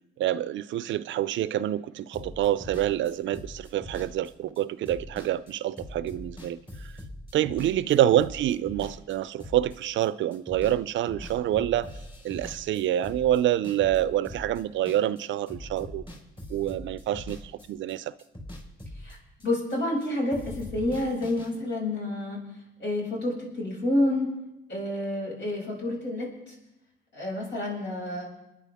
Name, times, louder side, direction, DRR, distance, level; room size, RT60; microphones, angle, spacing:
voice 1, 0.2-6.9 7.3-11.9 12.2-16.0 16.5-17.4 17.7-18.1, right 12 dB, 75° right, 0.5 m, -27 dB
sound 1, 2.1-10.1 10.3-10.8 11.1-15.2 15.5-17.9 18.2-20.1 20.3-21.5, left 1 dB, 25° left, 4.8 m, -42 dB
voice 2, 19.4-22.4 22.8-24.3 24.7-26.6 27.1-28.2, left 1 dB, 65° left, 6.9 m, -29 dB
28.5 x 10.0 x 3.6 m
cardioid pair, 90°, 20 cm